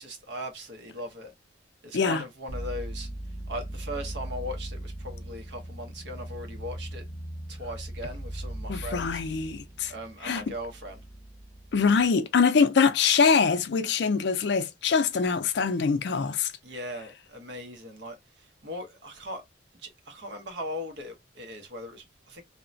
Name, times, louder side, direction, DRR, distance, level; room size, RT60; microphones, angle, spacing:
voice 1, 0.0-1.3 1.8-3.1 3.5-7.0 7.5-9.2 9.9-11.0 16.6-19.4 19.7-22.4, equal, 70° right, 0.9 m, -39 dB
sound 1, 2.5-12.1, right 1 dB, 15° left, 0.7 m, -39 dB
voice 2, 8.7-9.9 10.2-10.4 11.7-16.5, left 5 dB, 65° left, 0.4 m, -23 dB
2.8 x 2.1 x 2.5 m
head